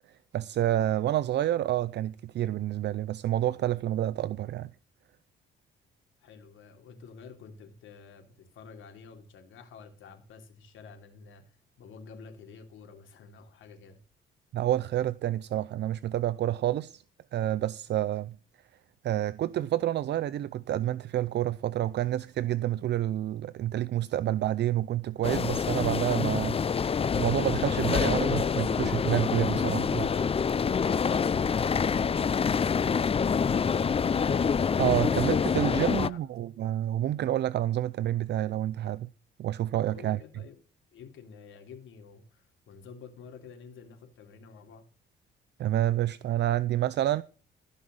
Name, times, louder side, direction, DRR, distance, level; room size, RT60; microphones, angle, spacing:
voice 1, 0.1-4.7 14.5-17.0 17.3-18.4 19.0-30.1 34.8-39.1 39.4-40.2 45.6-47.2, right 12 dB, 60° right, 0.5 m, -29 dB
voice 2, 6.2-14.0 39.8-40.6 40.9-44.9, left 5 dB, 80° left, 3.3 m, -49 dB
sound 1, 25.2-36.1, left 6 dB, 30° left, 0.5 m, -26 dB
16.5 x 5.6 x 6.3 m
cardioid pair, 90°, 20 cm